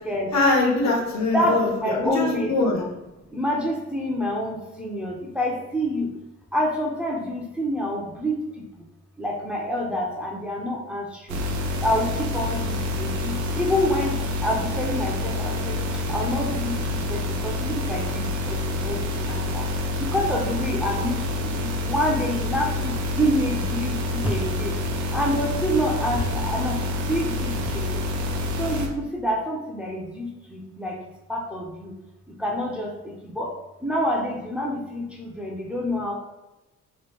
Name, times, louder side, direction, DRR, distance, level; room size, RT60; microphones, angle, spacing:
voice 1, 0.3-1.7 2.0-2.8, left 2 dB, 65° left, -1 dB, 1.0 m, -22 dB
voice 2, 1.3-2.9 3.3-6.1 6.5-8.4 9.2-11.4 11.8-14.1 14.4-15.8 16.1-18.6 18.8-19.6 20.0-24.7 25.1-26.8 27.1-28.0 28.6-30.9 31.3-31.9 32.4-32.9 33.3-33.5 33.8-36.1, equal, 5° right, -2 dB, 0.6 m, -27 dB
sound 1, 11.3-28.9, left 2 dB, 75° right, 0.6 m, -27 dB
3.1 x 2.1 x 3.4 m, 0.98 s
cardioid pair, 90°, 30 cm